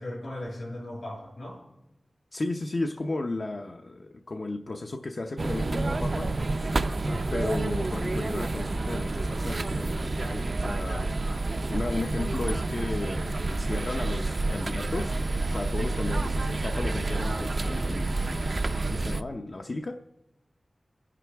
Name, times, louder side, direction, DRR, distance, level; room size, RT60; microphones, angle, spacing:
voice 1, 0.0-1.6 7.0-7.3, left 1 dB, 75° left, -1 dB, 6.0 m, -37 dB
voice 2, 2.3-6.3 7.3-11.1 11.7-18.5 18.9-20.1, left 2 dB, 50° left, 4 dB, 0.7 m, -34 dB
sound 1, 5.4-19.2, right 2 dB, 50° right, 0.5 m, -29 dB
28.0 x 11.0 x 3.5 m, 0.94 s
wide cardioid pair, 85°, 0 cm